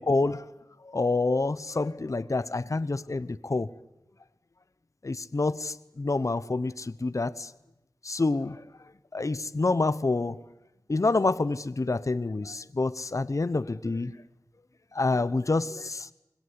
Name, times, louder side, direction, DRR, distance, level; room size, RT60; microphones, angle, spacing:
voice 1, 0.1-0.4 0.8-3.7 5.0-7.5 8.0-8.6 9.1-10.4 10.9-14.1 14.9-16.1, left 3 dB, 50° left, 15 dB, 0.9 m, -27 dB
25.0 x 22.0 x 9.8 m, 0.90 s
wide cardioid pair, 55°, 7 cm